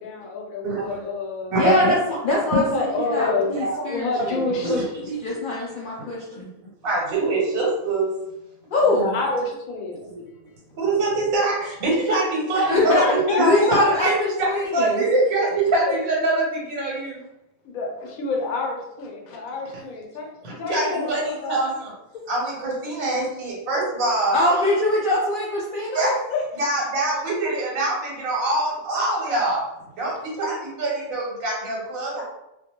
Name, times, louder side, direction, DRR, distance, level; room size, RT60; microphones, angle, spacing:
voice 1, 0.0-1.5 2.5-4.8 8.8-10.0 12.6-14.0 15.9-16.0 17.6-20.3 20.6-21.6 22.1-22.2 26.3-26.4, left 3 dB, 90° left, 0 dB, 1.1 m, -28 dB
voice 2, 0.6-1.0 1.5-2.0 3.6-3.7 4.3-4.8 6.3-6.4 6.8-8.1 10.1-10.2 10.8-12.9 13.3-17.2 20.4-21.9 22.3-24.4 25.9-26.2 26.6-29.6 30.0-32.2, right 2 dB, 85° right, -3 dB, 1.2 m, -24 dB
voice 3, 1.5-4.5 5.1-6.5 8.7-9.1 12.7-13.0 13.4-15.0 24.3-26.1, left 1 dB, 75° left, -4 dB, 0.4 m, -23 dB
2.4 x 2.2 x 2.8 m, 0.90 s
omnidirectional pair, 1.4 m